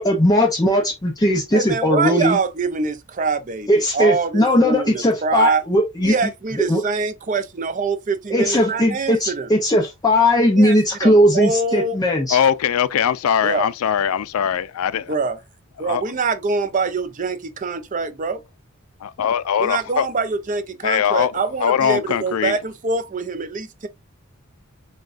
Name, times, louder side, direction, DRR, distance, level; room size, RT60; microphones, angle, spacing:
voice 1, 0.0-2.4 3.7-6.1 6.7-6.8 8.3-12.4, left 1 dB, 20° left, 0.6 m, -18 dB
voice 2, 1.5-5.6 6.0-9.5 10.6-12.0 13.4-13.7 15.1-15.4 15.8-18.4 19.6-23.9, right 4 dB, 35° right, 0.5 m, -24 dB
voice 3, 12.3-15.2 15.8-16.0 19.0-20.1 20.8-22.6, left 8 dB, 90° left, 0.4 m, -21 dB
6.3 x 2.2 x 2.5 m
head